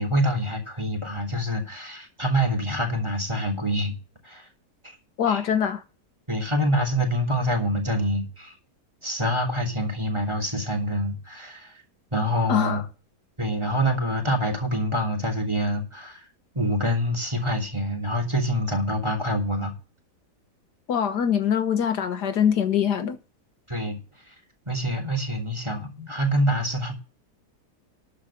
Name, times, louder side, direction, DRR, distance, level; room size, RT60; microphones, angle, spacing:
voice 1, 0.0-4.0 4.2-4.5 4.8-5.0 5.3-5.4 6.3-8.5 9.0-11.7 12.1-12.8 13.4-16.2 16.5-19.7 23.7-24.0 24.3-24.4 24.7-26.9, equal, 15° right, 3.0 m, -26 dB
voice 2, 5.2-5.8 12.5-12.8 20.9-23.2, left 8 dB, 75° left, 1.7 m, -23 dB
12.5 x 5.1 x 8.5 m
omnidirectional pair, 1.8 m